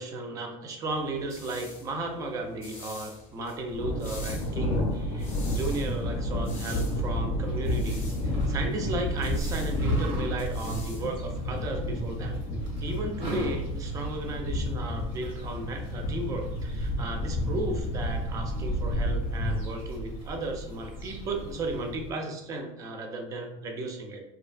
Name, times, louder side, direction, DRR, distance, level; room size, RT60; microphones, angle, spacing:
voice 1, 0.0-12.4 12.8-24.2, right 2 dB, 25° right, 4 dB, 0.4 m, -35 dB
sound 1, 0.9-11.8, left 3 dB, 20° left, 0.6 m, -48 dB
Thunder, 3.7-22.1, equal, 60° left, 0.5 m, -31 dB
sound 2, 7.4-21.9, right 1 dB, 45° right, 0.7 m, -45 dB
2.7 x 2.4 x 2.3 m, 0.86 s
cardioid pair, 170°, 13 cm